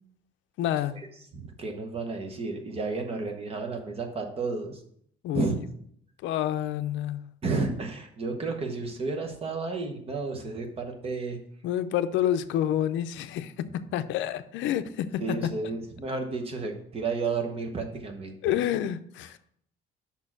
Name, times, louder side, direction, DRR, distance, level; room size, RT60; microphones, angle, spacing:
voice 1, 0.6-1.0 5.2-5.5 6.2-7.2 11.6-15.4 18.4-19.4, left 11 dB, 80° left, 0.5 m, -28 dB
voice 2, 1.3-4.8 5.3-5.6 7.4-11.4 15.2-18.5, right 3 dB, 30° right, 1.0 m, -32 dB
5.7 x 4.4 x 5.8 m
cardioid pair, 160°, 19 cm